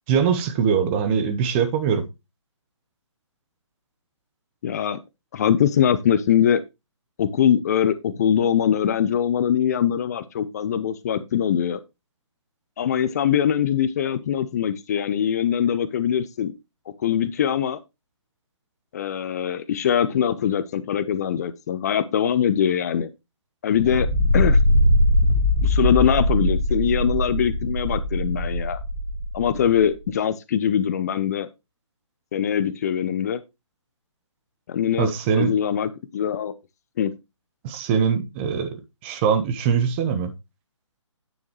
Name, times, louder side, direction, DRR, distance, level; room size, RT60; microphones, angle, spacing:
voice 1, 0.1-2.0 35.0-35.5 37.6-38.7 39.0-40.3, right 7 dB, 20° right, 1.1 m, -22 dB
voice 2, 4.6-5.0 5.3-6.6 7.2-11.8 12.8-16.5 17.0-17.8 18.9-23.1 23.6-24.1 24.3-24.6 25.6-28.8 29.3-31.5 32.3-33.4 34.7-36.5 37.0-37.1, left 9 dB, 30° left, 0.6 m, -22 dB
sound 1, 23.7-29.8, left 1 dB, 15° left, 1.8 m, -21 dB
9.4 x 7.0 x 3.1 m
figure-of-eight pair, 145°, 16 cm